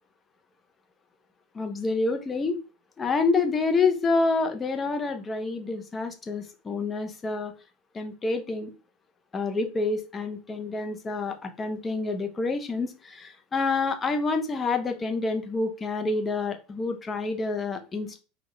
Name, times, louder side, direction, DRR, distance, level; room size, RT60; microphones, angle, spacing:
voice 1, 1.5-2.6 3.0-7.5 7.9-8.7 9.3-18.2, left 3 dB, 25° left, 6 dB, 0.7 m, -28 dB
3.6 x 2.4 x 3.0 m, 0.34 s
hypercardioid pair, 80°, 0 cm